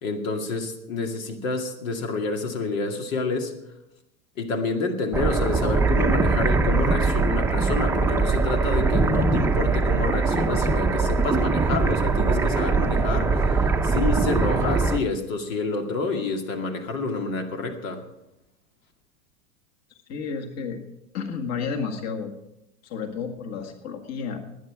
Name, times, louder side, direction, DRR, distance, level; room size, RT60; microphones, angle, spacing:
voice 1, 0.0-3.5 4.4-18.0, left 3 dB, 75° left, 4 dB, 2.3 m, -28 dB
sound 1, 5.1-15.0, right 3 dB, 5° right, 0.6 m, -22 dB
voice 2, 20.1-20.8 21.1-22.3 22.8-24.4, left 5 dB, 40° left, 4 dB, 1.8 m, -31 dB
19.5 x 9.5 x 4.9 m, 0.87 s
supercardioid pair, 120°, 40 cm